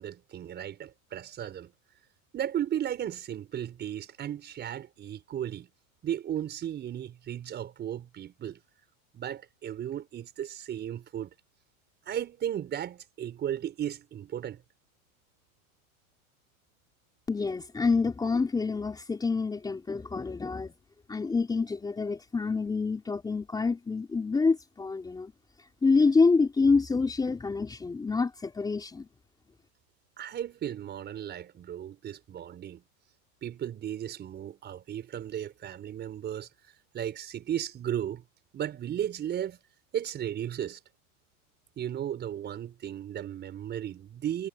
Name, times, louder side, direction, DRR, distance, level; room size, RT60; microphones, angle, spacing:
voice 1, 0.0-1.7 2.3-5.7 6.0-8.6 9.1-11.3 12.1-14.6 30.2-32.8 33.4-36.5 36.9-38.2 38.5-39.6 39.9-40.8 41.8-44.5, right 10 dB, 25° right, 5.8 m, -35 dB
voice 2, 17.3-20.7 21.1-25.3 25.8-29.1, left 4 dB, 10° left, 3.6 m, -27 dB
supercardioid pair, 150°, 41 cm